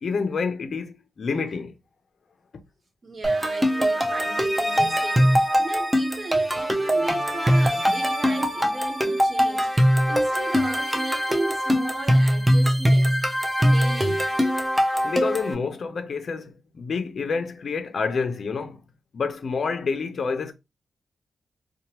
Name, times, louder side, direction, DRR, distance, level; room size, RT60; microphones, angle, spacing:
voice 1, 0.0-1.7 15.0-18.8 19.1-20.5, left 5 dB, 50° left, 0.5 m, -28 dB
voice 2, 3.0-14.3, right 2 dB, 40° right, 0.8 m, -36 dB
sound 1, 3.2-15.5, equal, 10° right, 0.5 m, -22 dB
2.9 x 2.2 x 2.8 m
wide cardioid pair, 120°, 0 cm